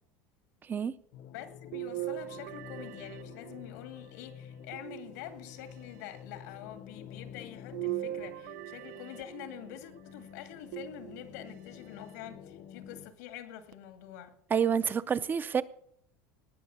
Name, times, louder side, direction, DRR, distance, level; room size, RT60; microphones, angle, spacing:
sound 1, 1.1-13.1, left 8 dB, 55° left, 0.9 m, -49 dB
voice 1, 1.3-14.4, left 10 dB, 85° left, 2.3 m, -46 dB
sound 2, 1.7-4.0 4.7-5.7 7.7-9.8 10.7-11.6 12.2-12.3 13.7-13.8, right 16 dB, 65° right, 0.6 m, -40 dB
voice 2, 14.5-15.6, right 7 dB, 20° right, 0.6 m, -28 dB
18.5 x 6.5 x 7.1 m
supercardioid pair, 140°, 9 cm